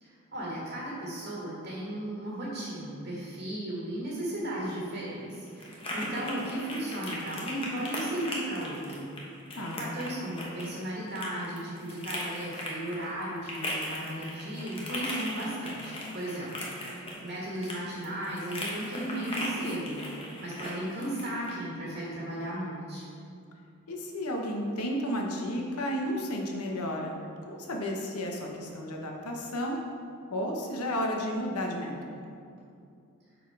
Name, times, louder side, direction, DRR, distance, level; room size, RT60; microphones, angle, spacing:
voice 1, 0.0-9.1 9.7-20.0 20.4-23.1, right 1 dB, 45° right, -6 dB, 1.4 m, -35 dB
sound 1, 4.4-21.6, left 1 dB, 25° left, 0.9 m, -39 dB
voice 2, 9.6-9.9 23.9-27.2 27.5-29.8 30.3-32.3, equal, 85° left, 1 dB, 1.0 m, -32 dB
7.0 x 4.1 x 4.7 m, 2.4 s
head